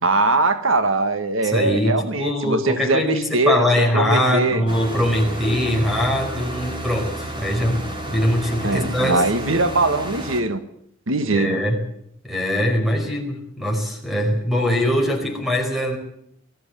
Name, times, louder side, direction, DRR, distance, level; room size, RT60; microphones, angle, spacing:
voice 1, 0.0-3.7 3.9-4.6 8.6-10.6 11.1-11.6, right 2 dB, 85° right, 10 dB, 1.7 m, -21 dB
voice 2, 1.4-9.2 11.3-11.8 12.2-16.0, equal, ahead, 3 dB, 5.0 m, -22 dB
sound 1, 4.7-10.4, right 1 dB, 25° right, 3.7 m, -31 dB
19.5 x 16.0 x 9.0 m, 0.72 s
head